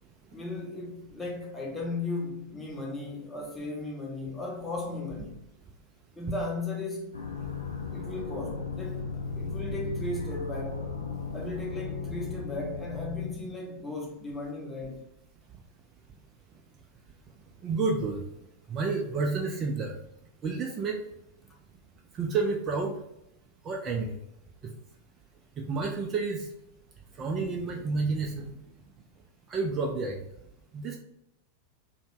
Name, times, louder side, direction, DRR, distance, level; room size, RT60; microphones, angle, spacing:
voice 1, 0.3-5.4 6.2-7.2 7.9-10.8 11.3-15.0, left 2 dB, 10° left, 0.7 m, -36 dB
sound 1, 7.1-13.3, left 4 dB, 75° left, 0.3 m, -36 dB
voice 2, 17.6-18.2 18.7-19.9 20.4-20.9 22.2-23.0 23.6-24.1 25.6-26.5 27.2-28.5 29.5-30.2 30.7-31.0, right 4 dB, 30° right, 0.3 m, -29 dB
2.4 x 2.1 x 3.0 m
figure-of-eight pair, 90°, 0 cm